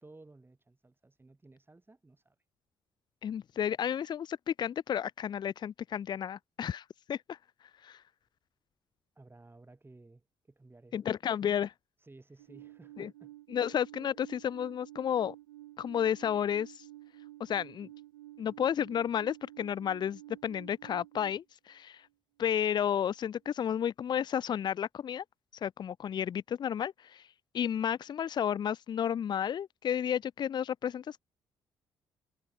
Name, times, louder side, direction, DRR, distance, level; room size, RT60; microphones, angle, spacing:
voice 1, 0.0-2.4 9.2-11.3 12.0-13.3, right 2 dB, 20° right, 2.3 m, -56 dB
voice 2, 3.2-7.4 7.8-8.0 10.9-11.7 13.0-13.1 13.5-15.4 15.8-16.8 17.4-17.9 18.4-22.0 22.4-25.2 25.6-27.2 27.5-31.2, left 9 dB, 35° left, 0.4 m, -32 dB
Alarm, 12.4-21.3, right 16 dB, 80° right, 0.5 m, -51 dB
figure-of-eight pair, 40°, 12 cm